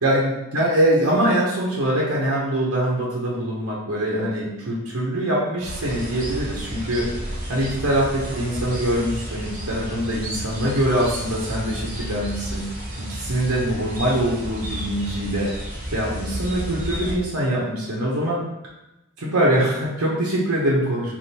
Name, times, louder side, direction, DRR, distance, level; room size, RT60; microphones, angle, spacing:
voice 1, 0.0-7.0 7.5-12.6 13.0-15.5 15.9-18.4 19.2-21.2, right 1 dB, 75° right, -5 dB, 1.0 m, -23 dB
sound 1, 5.6-17.1, equal, 35° right, 0.8 m, -32 dB
3.5 x 2.5 x 4.2 m, 0.96 s
head